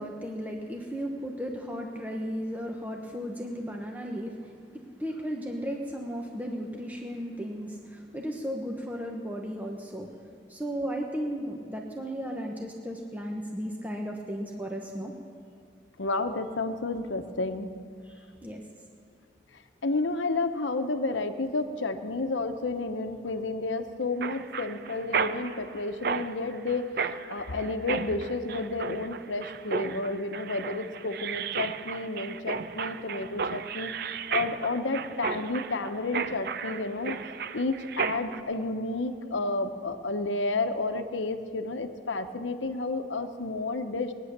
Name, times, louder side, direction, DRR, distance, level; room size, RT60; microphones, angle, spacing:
voice 1, 0.0-10.1 10.5-15.1 18.1-18.6, equal, 10° right, 0 dB, 0.9 m, -35 dB
voice 2, 16.0-17.7 19.8-33.9 34.3-37.2 37.5-44.1, left 3 dB, 90° left, 8 dB, 0.9 m, -31 dB
Mechanisms, 24.2-38.4, right 6 dB, 55° right, 0.5 m, -34 dB
19.0 x 9.9 x 6.7 m, 2.3 s
head